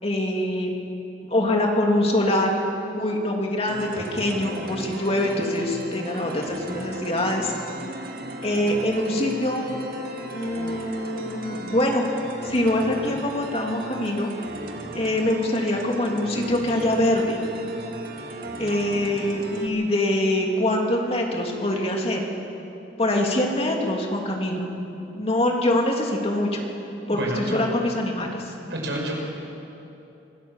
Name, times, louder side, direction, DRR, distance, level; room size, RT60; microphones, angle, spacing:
voice 1, 0.0-0.7 1.3-2.5 2.9-7.5 8.4-9.6 10.3-12.1 12.4-14.3 14.9-17.4 18.6-22.2 23.0-24.7 25.1-26.6 27.1-28.5, left 1 dB, 35° left, 1 dB, 2.7 m, -24 dB
sound 1, 3.7-19.7, right 1 dB, 55° right, 2.0 m, -36 dB
voice 2, 27.1-27.6 28.7-29.1, right 1 dB, 80° right, 0 dB, 5.5 m, -29 dB
25.0 x 16.5 x 7.3 m, 2.8 s
head